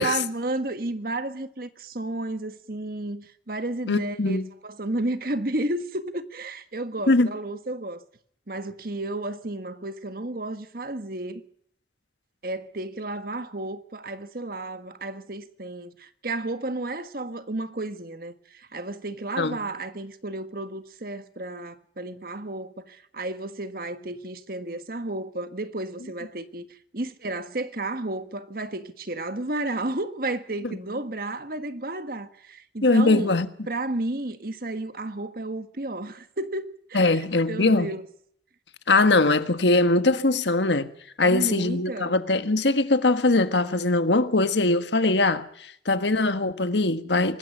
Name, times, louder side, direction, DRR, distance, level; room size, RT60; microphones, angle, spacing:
voice 1, 0.0-4.4 4.6-8.0 8.5-11.4 12.4-33.3 33.7-38.0 41.2-42.1, right 2 dB, 55° right, 1.5 m, -32 dB
voice 2, 3.9-4.5 7.1-7.3 19.4-19.6 32.8-33.5 36.9-37.9 38.9-40.9 41.2-47.4, left 2 dB, 85° left, 1.5 m, -21 dB
25.0 x 20.0 x 5.7 m
head